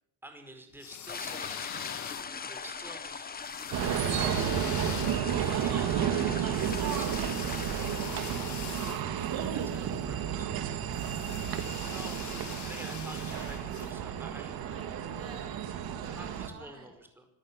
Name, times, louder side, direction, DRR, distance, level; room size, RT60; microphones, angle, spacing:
voice 1, 0.2-3.3 3.9-4.9 5.5-7.5 8.1-8.7 9.4-10.6 11.8-14.6 16.1-17.3, right 1 dB, 5° right, 5 dB, 5.0 m, -49 dB
sound 1, 0.7-2.6 3.4-9.8 10.9-13.9, left 10 dB, 45° left, 1.7 m, -43 dB
sound 2, 1.1-11.6, left 5 dB, 25° left, 1.5 m, -42 dB
sound 3, 3.7-16.5, right 9 dB, 65° right, 2.4 m, -32 dB
voice 2, 11.6-12.0 14.6-16.9, right 3 dB, 35° right, 4 dB, 6.7 m, -50 dB
25.5 x 14.0 x 9.9 m, 0.78 s
cardioid pair, 155°, 39 cm